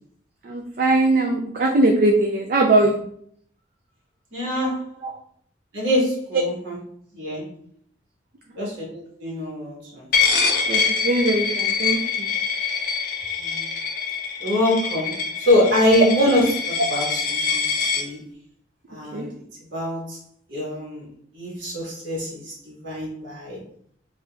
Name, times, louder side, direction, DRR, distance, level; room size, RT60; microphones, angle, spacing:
voice 1, 0.4-3.0 10.7-12.3 19.1-19.2, right 2 dB, 45° right, 1 dB, 0.4 m, -20 dB
voice 2, 4.3-4.9 5.7-6.8 7.1-7.5 8.5-10.1 13.4-13.6 14.4-17.6 17.9-18.2 18.9-19.3 19.7-20.2 20.5-21.1 21.3-23.6, left 1 dB, 70° right, -4 dB, 1.4 m, -24 dB
Coin (dropping), 10.1-18.0, left 5 dB, 50° left, 0.6 m, -24 dB
5.0 x 2.7 x 2.3 m, 0.64 s
head